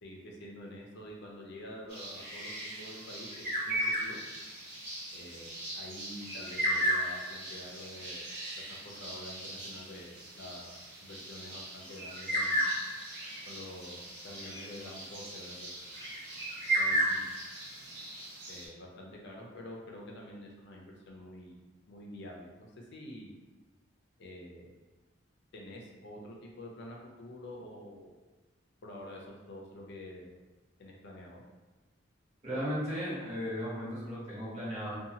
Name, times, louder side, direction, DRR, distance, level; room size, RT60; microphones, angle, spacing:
voice 1, 0.0-4.2 5.1-8.2 8.7-12.6 13.5-14.0 14.2-15.8 16.8-17.3 18.5-21.6 21.9-23.3 24.2-24.8 25.5-28.2 28.8-30.3 30.8-31.4, left 1 dB, 60° left, -1 dB, 0.5 m, -47 dB
sound 1, 1.9-18.7, right 1 dB, 55° right, 1.3 m, -35 dB
voice 2, 32.4-35.0, equal, 35° right, -8 dB, 1.0 m, -35 dB
2.7 x 2.3 x 2.7 m, 1.2 s
head